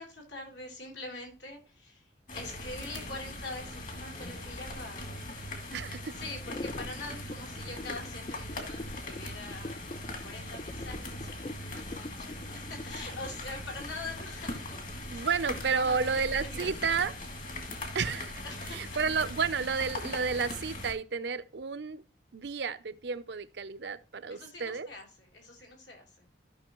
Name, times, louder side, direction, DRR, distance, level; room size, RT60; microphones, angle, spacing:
voice 1, 0.0-5.2 6.1-15.3 15.7-17.0 18.4-19.0 24.3-26.3, left 2 dB, 70° left, 3.5 m, -44 dB
sound 1, 2.3-20.9, left 1 dB, 45° left, 2.3 m, -40 dB
voice 2, 5.7-6.1 15.1-17.1 17.9-18.4 18.7-22.0 22.3-24.9, right 5 dB, 65° right, 0.6 m, -31 dB
sound 2, 6.4-14.2, left 2 dB, 30° left, 0.4 m, -43 dB
14.0 x 5.9 x 3.0 m
head